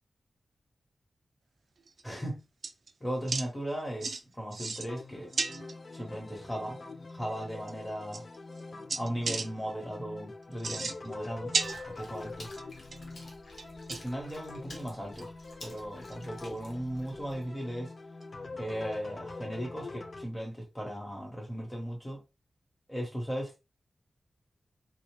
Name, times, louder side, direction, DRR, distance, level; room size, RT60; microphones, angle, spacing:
sound 1, 1.9-2.2 2.6-2.9 3.3-3.5 4.0-4.2 4.5-5.0 5.3-5.7 7.1-7.2 7.7-7.8 8.1-8.6 8.9-9.5 10.5-11.3 11.5-12.3 12.6-13.1 13.6-14.2 14.8-14.9 15.2-15.3 15.7-15.8 16.1-16.2 18.2-18.3, right 4 dB, 60° right, 0.3 m, -34 dB
voice 1, 2.0-2.5 3.0-5.3 5.9-6.8 7.1-8.2 9.0-11.6 11.9-12.5 13.9-15.3 15.6-17.9 18.6-22.2 22.9-23.6, equal, 10° left, 1.1 m, -37 dB
sound 2, 4.9-20.2, left 3 dB, 50° left, 0.3 m, -45 dB
Water / Splash splatter, 11.6-17.4, left 1 dB, 65° left, 0.9 m, -51 dB
2.5 x 2.1 x 3.0 m
wide cardioid pair, 135°, 0 cm